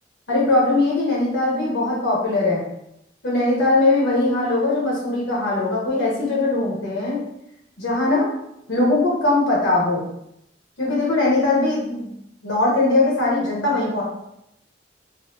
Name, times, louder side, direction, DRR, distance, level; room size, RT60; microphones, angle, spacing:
voice 1, 0.3-2.7 3.2-7.2 7.8-8.3 8.7-10.0 10.8-12.1 12.4-14.0, left 2 dB, 85° left, -5 dB, 1.2 m, -20 dB
3.9 x 2.1 x 2.8 m, 0.80 s
head